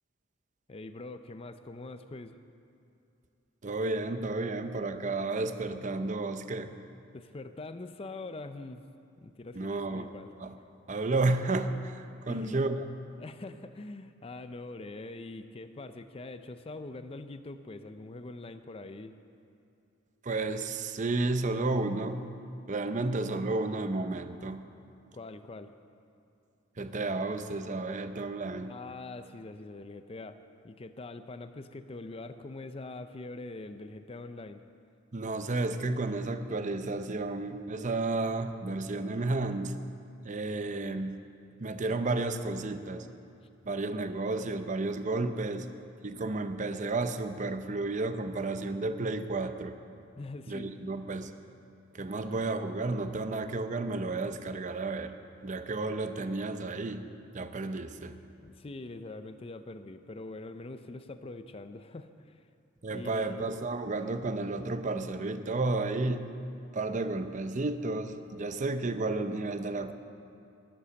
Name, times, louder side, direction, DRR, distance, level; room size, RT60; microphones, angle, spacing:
voice 1, 0.7-2.4 7.1-8.8 9.2-10.3 11.3-11.4 12.3-12.6 13.2-19.2 25.1-25.7 28.7-30.4 30.6-34.6 50.2-50.7 58.4-62.5 62.9-63.5, left 2 dB, 30° left, 9 dB, 0.5 m, -43 dB
voice 2, 3.6-6.7 9.6-10.1 10.4-10.5 10.9-12.8 20.2-22.3 22.7-24.6 26.8-28.7 35.1-39.8 40.2-41.2 41.6-43.1 43.6-45.7 46.0-49.7 50.5-51.3 51.9-55.2 55.4-57.0 57.3-58.2 62.8-66.3 66.7-69.9, right 2 dB, 40° right, 9 dB, 0.6 m, -32 dB
11.5 x 11.5 x 6.9 m, 2.7 s
head